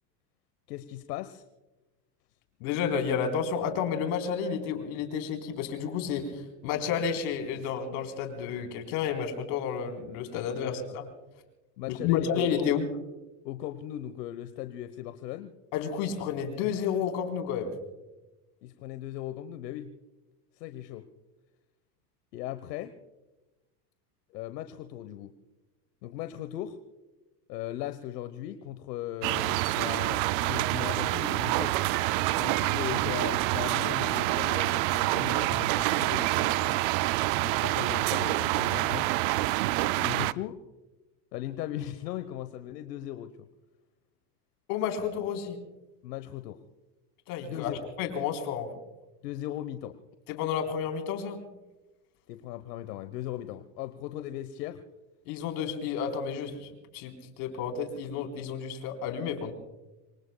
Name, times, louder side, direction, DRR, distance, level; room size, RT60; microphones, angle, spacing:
voice 1, 0.7-1.4 10.6-11.0 11.8-12.7 13.4-15.5 18.6-19.9 20.5-21.1 22.3-22.9 24.3-25.3 26.0-26.8 27.5-31.8 32.4-36.8 37.4-39.1 40.0-40.5 41.3-43.3 46.0-46.6 47.4-47.8 49.2-50.0 52.3-54.8, left 12 dB, 90° left, 10 dB, 1.1 m, -38 dB
voice 2, 2.6-11.0 11.9-12.9 15.7-17.7 40.1-40.2 44.7-45.6 47.3-48.7 50.3-51.4 55.3-59.5, left 7 dB, 65° left, 5 dB, 4.0 m, -31 dB
sound 1, 29.2-40.3, right 18 dB, 45° right, 0.4 m, -27 dB
26.5 x 23.5 x 2.3 m, 1.1 s
supercardioid pair, 140°, 47 cm